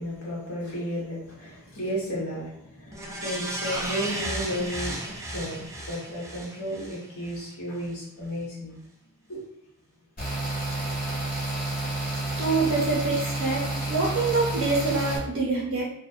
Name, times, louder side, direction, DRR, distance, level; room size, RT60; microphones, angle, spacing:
voice 1, 0.0-8.8 9.3-9.4, equal, 80° left, -4 dB, 0.8 m, -33 dB
sound 1, 2.9-7.5 7.8-7.9, right 1 dB, 15° right, 0.3 m, -34 dB
sound 2, 10.2-15.2, right 2 dB, 40° left, 0.9 m, -30 dB
voice 2, 12.4-13.6 13.9-15.8, right 3 dB, 70° right, -5 dB, 0.6 m, -25 dB
2.5 x 2.1 x 2.3 m, 0.79 s
head